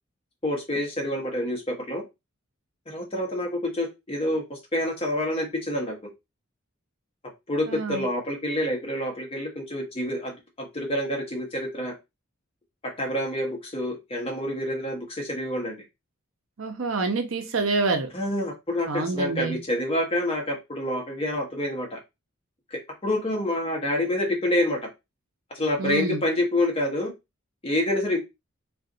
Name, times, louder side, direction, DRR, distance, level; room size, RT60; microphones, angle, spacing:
voice 1, 0.4-2.0 2.9-6.1 7.5-12.0 13.0-15.8 18.1-22.0 22.7-24.8 25.5-27.1 27.6-28.2, left 1 dB, 25° left, 0 dB, 1.0 m, -27 dB
voice 2, 7.7-8.0 16.6-18.1 18.9-19.6 25.8-26.2, right 3 dB, 70° right, 5 dB, 0.7 m, -27 dB
2.5 x 2.3 x 3.7 m, 0.22 s
head